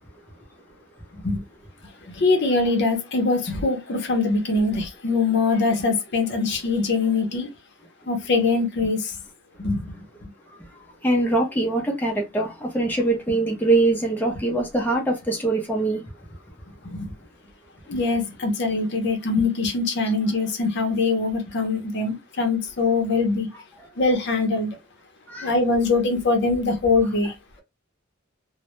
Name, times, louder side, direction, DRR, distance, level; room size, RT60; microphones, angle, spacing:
voice 1, 2.1-7.5 8.1-9.2 9.6-10.0 16.8-17.1 17.9-23.5 24.0-24.7 25.4-27.3, left 3 dB, 60° left, 0.6 m, -23 dB
voice 2, 11.0-16.0 23.5-23.9 25.3-25.6 27.2-27.3, right 2 dB, 10° left, 0.5 m, -23 dB
2.1 x 2.0 x 2.9 m
head